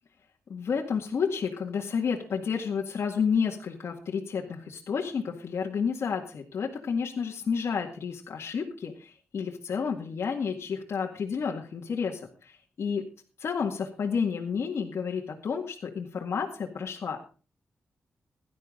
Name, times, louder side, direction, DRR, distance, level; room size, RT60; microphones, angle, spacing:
voice 1, 0.5-13.1 13.4-17.2, left 6 dB, 70° left, -1 dB, 2.0 m, -30 dB
17.0 x 12.0 x 3.8 m, 0.36 s
cardioid pair, 80°, 5 cm